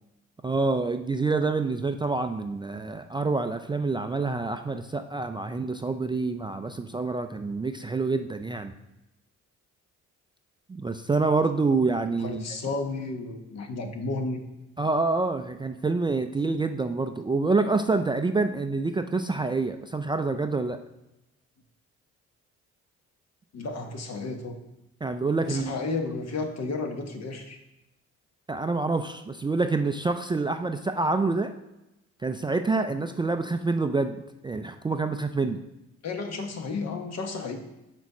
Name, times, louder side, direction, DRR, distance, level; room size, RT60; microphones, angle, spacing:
voice 1, 0.4-8.7 10.7-12.4 14.8-20.8 25.0-25.7 28.5-31.5 32.2-35.6, right 3 dB, 15° right, 7 dB, 0.3 m, -27 dB
voice 2, 12.2-14.4 23.5-24.6 25.5-27.6 36.0-37.6, left 3 dB, 60° left, 5 dB, 1.1 m, -32 dB
6.2 x 4.1 x 6.1 m, 0.93 s
cardioid pair, 90°, 30 cm